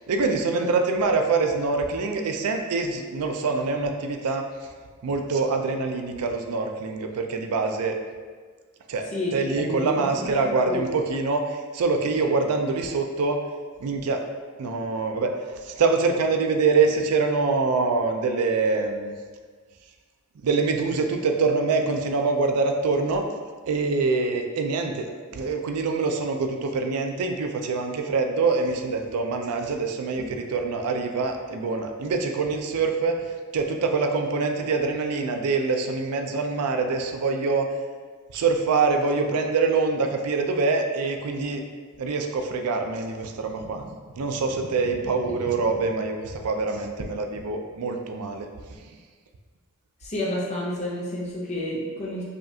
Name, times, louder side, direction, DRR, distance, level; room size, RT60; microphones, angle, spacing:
voice 1, 0.1-4.4 5.0-8.0 8.9-9.0 9.3-13.4 13.8-14.2 14.6-15.3 15.6-19.1 20.4-23.3 23.7-33.2 33.5-37.7 38.3-41.6 42.0-43.9 44.2-48.5, right 4 dB, 90° right, 4 dB, 0.4 m, -25 dB
voice 2, 9.1-10.8 50.0-52.2, left 1 dB, 30° left, -5 dB, 0.5 m, -30 dB
5.0 x 2.4 x 2.7 m, 1.5 s
head